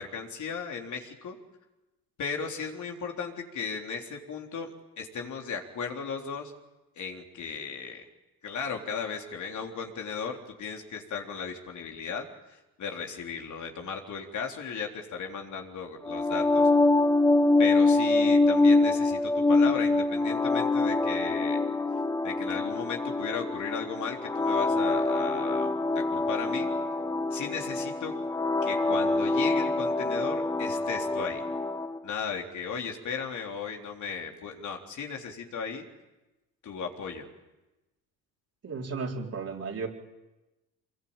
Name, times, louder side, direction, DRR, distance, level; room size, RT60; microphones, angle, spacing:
voice 1, 0.0-1.4 2.2-6.5 7.0-8.1 8.4-16.7 17.6-21.6 22.2-26.7 27.3-28.1 28.6-31.4 32.0-35.9 36.6-37.3, left 5 dB, 55° left, 2 dB, 3.8 m, -36 dB
sound 1, 16.0-32.0, left 2 dB, 10° left, 0.9 m, -25 dB
voice 2, 38.6-39.9, right 4 dB, 45° right, 1 dB, 4.2 m, -34 dB
25.0 x 22.0 x 8.9 m, 1.0 s
cardioid pair, 95°, 35 cm